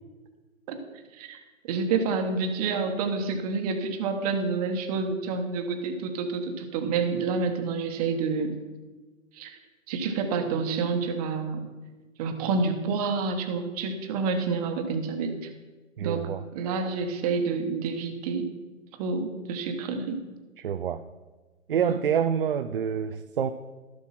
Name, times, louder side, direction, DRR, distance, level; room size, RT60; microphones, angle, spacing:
voice 1, 1.7-8.6 9.3-9.6 9.9-11.7 12.2-15.5 16.0-18.5 19.0-20.2 21.9-22.0, right 4 dB, 25° right, 6 dB, 1.2 m, -28 dB
voice 2, 16.0-16.4 20.6-21.0 21.7-23.5, right 8 dB, 45° right, 9 dB, 0.4 m, -27 dB
13.0 x 7.5 x 5.8 m, 1.2 s
hypercardioid pair, 140°, 42 cm